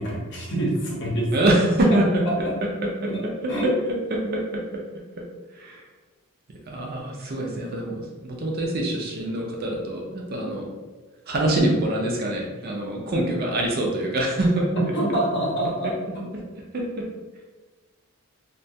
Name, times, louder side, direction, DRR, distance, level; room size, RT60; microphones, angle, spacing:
voice 1, 0.0-1.3 1.9-2.0 3.0-3.2 3.5-3.7 4.2-4.3 14.9-16.3, right 1 dB, 50° left, -3 dB, 0.7 m, -26 dB
voice 2, 1.3-2.5 4.1-4.6 5.6-5.8 6.7-10.7 11.3-14.7 16.7-17.1, right 1 dB, 45° right, -1 dB, 0.4 m, -24 dB
2.3 x 2.2 x 2.7 m, 1.3 s
head